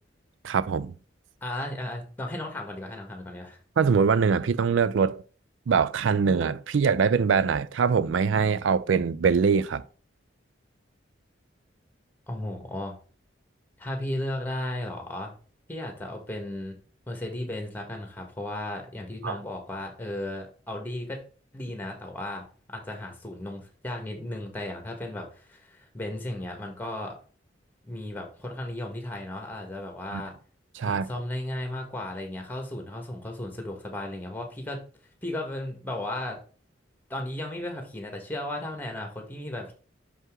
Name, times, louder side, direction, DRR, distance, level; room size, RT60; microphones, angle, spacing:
voice 1, 0.4-0.9 3.8-5.2 5.7-9.8 19.2-19.4 30.1-30.2 30.8-31.1, right 6 dB, 80° right, 0.4 m, -23 dB
voice 2, 1.4-3.6 12.3-12.9 13.8-15.3 15.7-16.8 17.1-21.2 21.5-27.2 27.8-30.3 30.8-34.8 35.2-36.4 37.1-39.7, left 1 dB, 10° left, 1.6 m, -35 dB
6.1 x 5.4 x 3.7 m
head